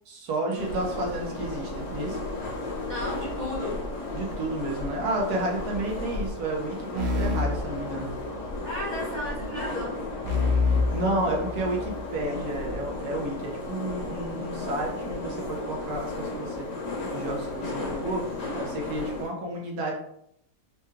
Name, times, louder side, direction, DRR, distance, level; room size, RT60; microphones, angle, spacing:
voice 1, 0.1-2.2 4.1-8.1 10.9-16.7 17.1-18.3 18.5-19.9, right 1 dB, 70° right, 0 dB, 1.3 m, -31 dB
sound 1, 0.6-19.2, left 2 dB, 55° left, 1.4 m, -34 dB
voice 2, 2.9-3.8 8.6-10.0, left 1 dB, 30° left, -6 dB, 1.0 m, -34 dB
sound 2, 6.9-8.6 10.2-12.0, left 3 dB, 55° right, 0.8 m, -27 dB
4.7 x 2.2 x 3.1 m, 0.73 s
omnidirectional pair, 1.8 m